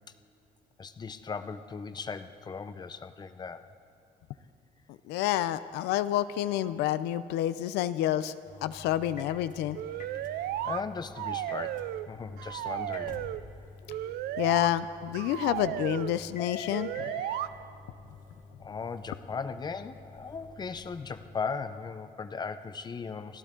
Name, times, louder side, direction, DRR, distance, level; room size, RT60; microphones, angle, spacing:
voice 1, 0.8-3.6 10.3-13.3 17.4-17.6 18.6-23.4, left 5 dB, 25° left, 11 dB, 0.7 m, -38 dB
voice 2, 5.1-8.3 8.6-9.8 14.4-17.1, left 12 dB, 90° left, 13 dB, 0.5 m, -29 dB
sound 1, 8.5-21.4, left 4 dB, 50° left, 1.6 m, -47 dB
sound 2, 9.7-10.8 11.2-12.1 12.4-13.4 13.9-14.7 15.1-16.1 16.7-17.5, right 13 dB, 70° right, 0.5 m, -34 dB
29.0 x 12.0 x 3.8 m, 2.6 s
cardioid pair, 110°, 17 cm